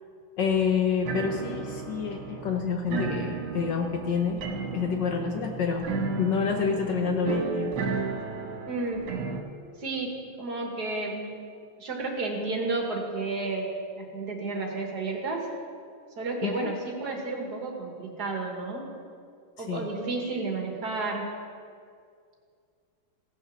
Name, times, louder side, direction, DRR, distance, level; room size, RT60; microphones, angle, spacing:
voice 1, 0.4-4.4 4.7-5.9 6.2-7.7 16.4-16.7 19.6-19.9, left 6 dB, 65° left, 3 dB, 1.3 m, -28 dB
sound 1, 1.0-9.4, right 5 dB, 70° right, 1.9 m, -33 dB
voice 2, 8.7-9.1 9.8-11.4 11.8-13.7 14.0-15.5 16.2-18.9 19.6-21.3, right 3 dB, 50° right, 1 dB, 1.7 m, -32 dB
16.0 x 6.4 x 6.2 m, 2.2 s
omnidirectional pair, 2.4 m